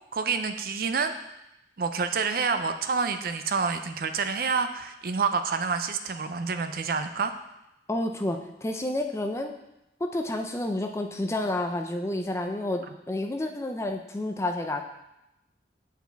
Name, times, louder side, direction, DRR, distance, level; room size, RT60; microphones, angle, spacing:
voice 1, 0.1-1.1 1.8-7.3, right 5 dB, 50° right, 8 dB, 0.4 m, -28 dB
voice 2, 7.9-9.5 10.0-14.8, left 1 dB, 15° left, 4 dB, 0.4 m, -30 dB
9.1 x 4.6 x 3.4 m, 0.89 s
head